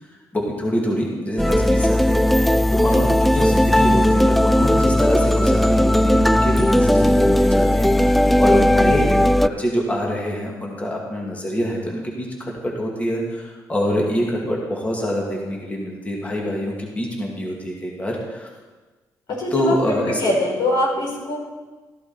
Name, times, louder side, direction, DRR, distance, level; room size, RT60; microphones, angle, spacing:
voice 1, 0.1-18.5 19.5-20.2, equal, 20° left, -2 dB, 2.6 m, -25 dB
sound 1, 1.4-9.5, left 1 dB, ahead, 0.3 m, -17 dB
voice 2, 19.3-19.7 20.1-21.4, left 2 dB, 80° left, -2 dB, 4.5 m, -22 dB
14.0 x 11.5 x 4.5 m, 1.3 s
cardioid pair, 95°, 7 cm